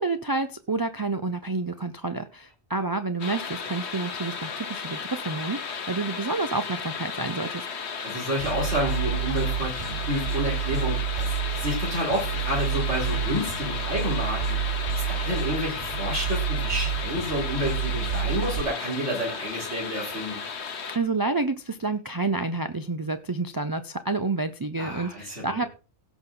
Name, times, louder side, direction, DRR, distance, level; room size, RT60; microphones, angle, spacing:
voice 1, 0.0-7.7 20.9-25.7, right 3 dB, 30° right, 9 dB, 0.4 m, -29 dB
sound 1, 3.2-21.0, left 6 dB, 65° left, 1.4 m, -34 dB
voice 2, 8.0-14.6 15.0-20.4 24.8-25.7, equal, 75° right, -4 dB, 4.5 m, -30 dB
sound 2, 8.4-18.6, right 8 dB, 45° right, 0.9 m, -29 dB
16.5 x 6.1 x 3.9 m, 0.33 s
omnidirectional pair, 1.2 m